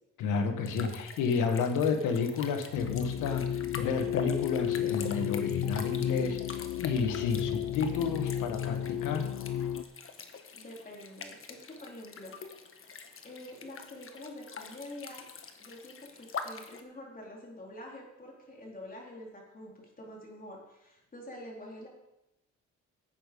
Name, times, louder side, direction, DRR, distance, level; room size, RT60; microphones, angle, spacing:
voice 1, 0.2-9.3, left 5 dB, 90° left, 6 dB, 1.5 m, -31 dB
sound 1, 0.6-16.8, left 5 dB, 45° left, 1.4 m, -45 dB
sound 2, 2.7-9.8, left 10 dB, 70° left, 0.8 m, -33 dB
voice 2, 10.6-12.3 12.6-15.2 15.6-21.9, left 1 dB, 30° left, -2 dB, 4.1 m, -47 dB
11.5 x 8.5 x 5.4 m, 0.90 s
cardioid pair, 90°, 30 cm